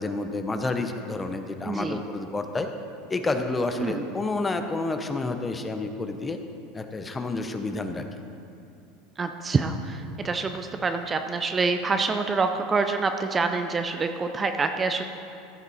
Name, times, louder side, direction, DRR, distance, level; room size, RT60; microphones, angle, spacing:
voice 1, 0.0-2.7 3.1-6.4 6.7-8.0, left 3 dB, 15° left, 6 dB, 0.7 m, -29 dB
voice 2, 1.6-2.0 3.8-4.1 9.2-15.0, right 4 dB, 20° right, 7 dB, 0.5 m, -26 dB
14.5 x 6.8 x 4.2 m, 2.6 s
supercardioid pair, 125°, 0 cm